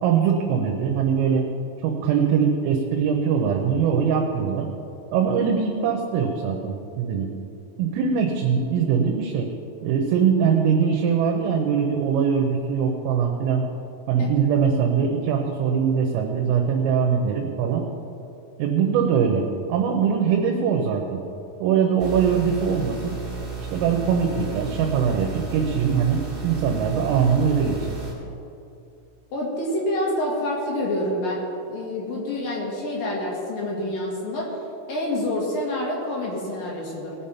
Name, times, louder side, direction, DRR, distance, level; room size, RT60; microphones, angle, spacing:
voice 1, 0.0-1.5 1.8-4.7 5.1-7.3 7.8-9.5 9.8-13.7 14.1-17.8 18.6-21.2 21.6-23.2 23.7-28.0, right 7 dB, 85° right, 1 dB, 3.6 m, -22 dB
sound 1, 22.0-28.1, right 4 dB, 25° right, 2.9 m, -33 dB
voice 2, 29.3-31.4 31.7-34.5 34.9-37.1, left 1 dB, 55° left, -4 dB, 3.0 m, -27 dB
19.0 x 7.2 x 5.7 m, 2.7 s
omnidirectional pair, 5.8 m